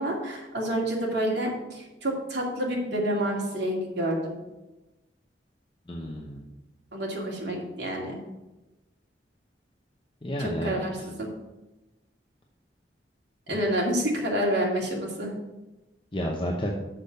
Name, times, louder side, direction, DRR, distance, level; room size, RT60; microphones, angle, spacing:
voice 1, 0.0-4.4 6.9-8.2 10.4-11.3 13.5-15.3, right 1 dB, 70° right, -2 dB, 2.4 m, -28 dB
voice 2, 5.9-6.5 10.2-11.1 13.5-13.6 16.1-16.7, equal, 25° left, -1 dB, 0.8 m, -31 dB
6.8 x 6.1 x 6.6 m, 1.0 s
head